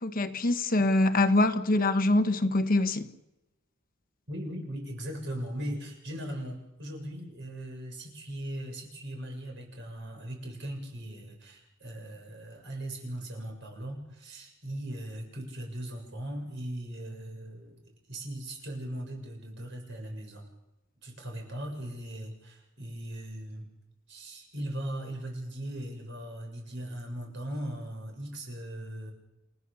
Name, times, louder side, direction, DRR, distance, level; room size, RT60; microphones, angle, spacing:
voice 1, 0.0-3.1, left 2 dB, 45° left, 1.2 m, -24 dB
voice 2, 4.3-17.8 18.1-20.4 21.0-23.6 24.1-29.1, right 1 dB, 60° right, 7.1 m, -39 dB
29.5 x 15.5 x 7.0 m
head